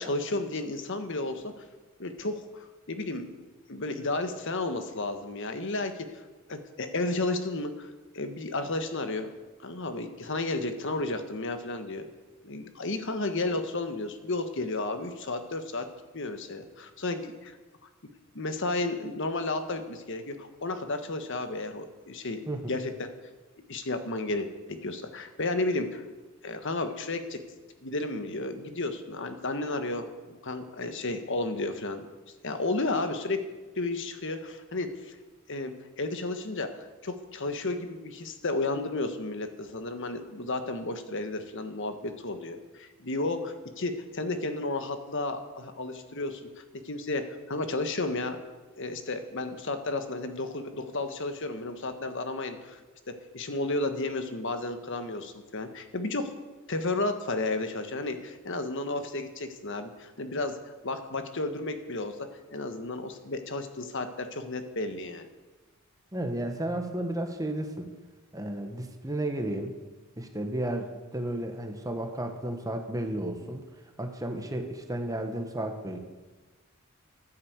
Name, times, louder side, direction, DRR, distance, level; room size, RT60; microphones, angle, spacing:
voice 1, 0.0-1.5 2.0-2.5 2.9-3.2 3.7-6.2 6.5-7.9 8.1-9.3 9.6-12.1 12.4-15.9 16.1-17.6 18.3-22.9 23.7-26.0 26.4-27.4 27.8-32.1 32.4-33.4 33.8-35.1 35.5-46.4 46.8-48.4 48.8-52.8 53.1-56.3 56.7-60.5 60.8-65.3, left 2 dB, 60° left, 8 dB, 1.4 m, -32 dB
voice 2, 22.5-22.8 66.1-67.9 68.3-69.7 70.2-73.6 74.0-76.0, right 1 dB, 15° right, 5 dB, 1.4 m, -33 dB
14.0 x 10.0 x 8.2 m, 1.2 s
head